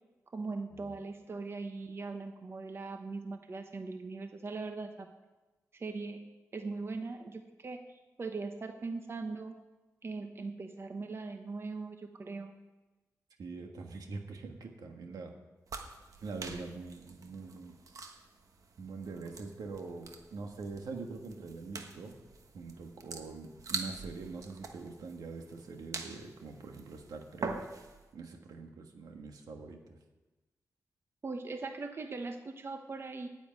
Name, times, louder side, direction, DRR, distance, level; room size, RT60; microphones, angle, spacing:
voice 1, 0.3-5.1 5.7-6.2 6.5-9.5 10.0-12.5 31.2-33.3, right 3 dB, 40° right, 6 dB, 1.0 m, -40 dB
voice 2, 13.4-15.3 16.2-17.7 18.8-22.1 22.5-27.5 28.1-30.0, right 4 dB, 85° right, 3 dB, 1.6 m, -44 dB
sound 1, 15.7-28.1, right 4 dB, 65° right, 1.3 m, -45 dB
9.2 x 8.3 x 9.3 m, 1.2 s
wide cardioid pair, 95°, 6 cm